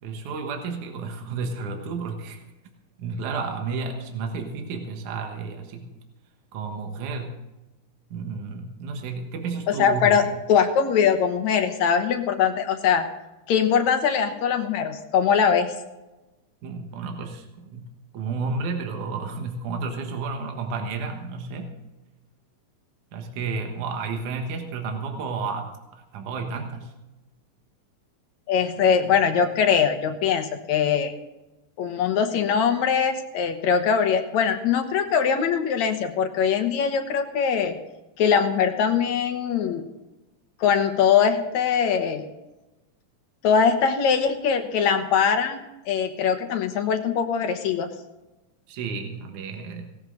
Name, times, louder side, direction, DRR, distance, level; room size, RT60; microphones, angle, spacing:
voice 1, 0.0-2.4 3.0-5.9 6.5-7.4 8.1-10.2 16.6-17.9 18.1-21.8 23.1-25.7 26.1-26.9 48.7-49.9, right 4 dB, 75° right, 3 dB, 2.8 m, -31 dB
voice 2, 9.7-13.0 13.5-15.7 28.5-31.1 31.8-37.8 38.2-39.9 40.6-42.2 43.4-47.9, left 7 dB, 70° left, 7 dB, 2.3 m, -22 dB
17.5 x 13.5 x 3.8 m, 1.0 s
omnidirectional pair, 3.6 m